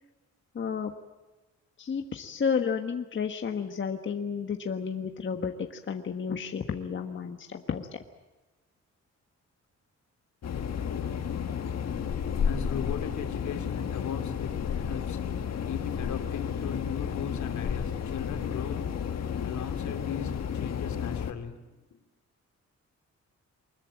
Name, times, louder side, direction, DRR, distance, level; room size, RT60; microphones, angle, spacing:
voice 1, 0.5-0.9 1.8-7.9, left 6 dB, 40° left, 5 dB, 1.4 m, -31 dB
sound 1, 10.4-21.3, left 7 dB, 60° left, 1.8 m, -32 dB
voice 2, 12.4-21.6 21.9-22.0, left 7 dB, 75° left, 6 dB, 2.8 m, -38 dB
24.0 x 21.0 x 8.8 m, 1.1 s
wide cardioid pair, 155°, 29 cm